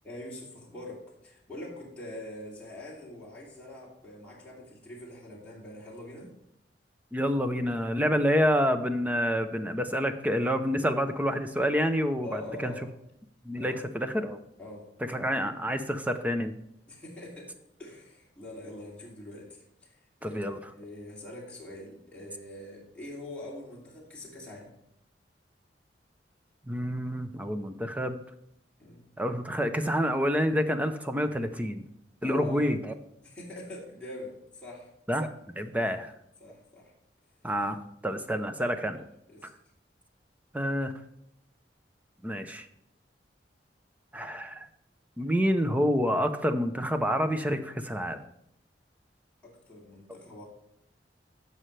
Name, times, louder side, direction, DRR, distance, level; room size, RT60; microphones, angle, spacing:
voice 1, 0.0-6.3 12.2-12.8 13.6-13.8 14.6-14.9 15.3-15.6 16.9-17.5 17.8-24.7 28.8-29.1 32.2-32.7 33.2-34.9 35.8-35.9 36.4-36.9 38.3-38.5 38.8-38.9 39.3-39.5 49.4-50.5, left 1 dB, 5° left, -6 dB, 2.7 m, -44 dB
voice 2, 7.1-12.7 13.4-14.4 15.1-16.5 20.2-20.6 26.7-28.2 29.2-31.8 32.2-32.9 35.1-36.1 37.4-39.0 40.5-40.9 42.2-42.7 44.1-44.7 45.2-48.2, equal, 10° right, 8 dB, 0.7 m, -28 dB
15.0 x 5.6 x 3.3 m, 0.78 s
head